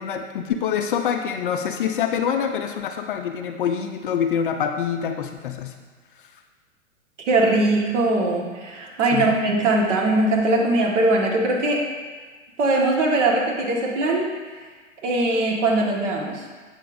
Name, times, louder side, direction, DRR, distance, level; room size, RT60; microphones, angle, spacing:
voice 1, 0.0-5.7 9.1-9.3, left 8 dB, 40° left, 5 dB, 0.5 m, -25 dB
voice 2, 7.3-11.8 12.6-14.3 15.0-16.4, right 2 dB, 60° right, -1 dB, 1.6 m, -21 dB
7.9 x 6.6 x 2.6 m, 1.4 s
hypercardioid pair, 120°, 40 cm